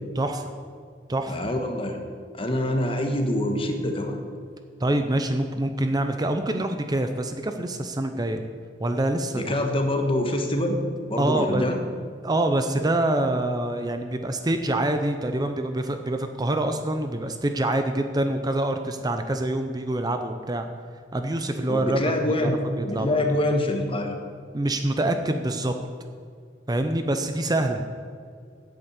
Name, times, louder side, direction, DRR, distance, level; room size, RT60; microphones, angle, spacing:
voice 1, 0.2-0.5 1.1-1.3 4.8-8.4 8.8-9.6 11.2-11.7 12.2-20.6 21.1-22.0 22.4-22.5 22.8-23.2 24.5-25.8 26.7-27.8, right 1 dB, 20° right, 7 dB, 0.6 m, -25 dB
voice 2, 1.3-2.0 2.3-4.2 9.3-10.8 11.1-11.8 21.7-22.6 22.8-24.2, left 1 dB, 30° left, 4 dB, 1.3 m, -25 dB
8.8 x 8.3 x 8.1 m, 2.2 s
head